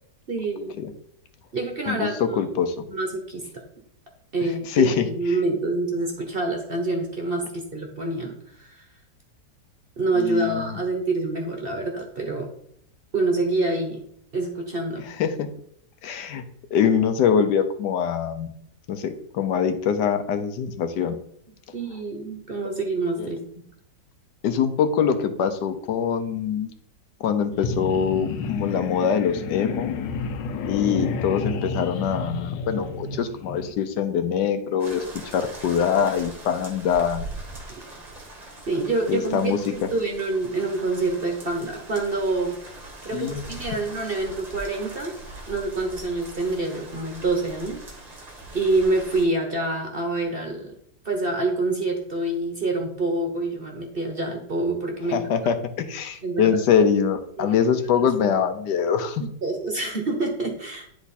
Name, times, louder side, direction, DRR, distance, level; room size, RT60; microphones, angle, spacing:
voice 1, 0.3-0.8 1.5-2.4 2.9-3.4 4.3-8.9 10.0-12.5 13.1-14.0 14.3-15.1 21.7-23.4 38.7-42.6 43.0-45.1 45.5-50.7 51.0-55.3 56.2-56.5 57.4-57.6 58.0-58.1 59.2-60.9, right 2 dB, 40° right, 2 dB, 0.9 m, -27 dB
voice 2, 1.9-2.7 4.4-5.1 10.2-10.8 15.0-15.5 16.0-16.4 16.7-18.5 18.9-21.2 23.2-23.3 24.4-26.7 27.2-29.9 30.7-35.0 35.3-37.2 39.1-39.6 43.1-43.4 55.1-59.2, left 7 dB, 75° left, 9 dB, 1.2 m, -23 dB
sound 1, 27.5-33.7, left 4 dB, 90° left, 1.4 m, -30 dB
sound 2, 34.8-49.2, right 2 dB, 25° right, 1.2 m, -41 dB
10.0 x 3.5 x 4.1 m, 0.70 s
omnidirectional pair, 1.9 m